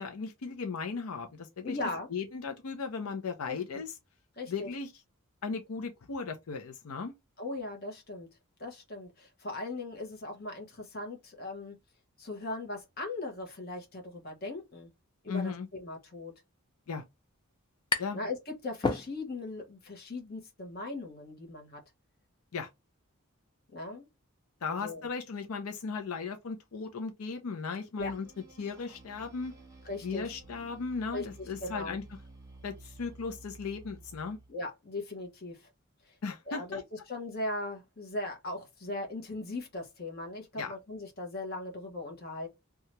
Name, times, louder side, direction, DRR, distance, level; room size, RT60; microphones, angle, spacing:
voice 1, 0.0-1.8 2.1-3.9 4.5-4.9 5.4-7.1 15.3-15.7 16.9-17.0 18.0-18.2 22.5-22.7 24.6-28.3 28.6-29.5 30.0-32.0 32.6-34.4 36.2-36.8 40.6-40.7, left 5 dB, 90° left, 0.5 m, -36 dB
voice 2, 1.6-2.1 3.5-3.6 4.4-4.7 7.4-8.3 8.6-11.8 12.2-14.9 15.2-16.3 18.1-21.8 23.7-24.1 24.7-25.1 28.0-28.1 29.8-30.3 31.1-31.3 31.6-32.0 34.5-35.7 36.1-36.2 36.5-42.5, left 2 dB, 45° left, 1.0 m, -39 dB
sound 1, 16.8-16.9 17.1-18.3 18.6-19.5, left 3 dB, 20° left, 0.3 m, -33 dB
sound 2, 28.0-34.5, right 2 dB, 15° right, 0.7 m, -52 dB
2.8 x 2.3 x 3.0 m
head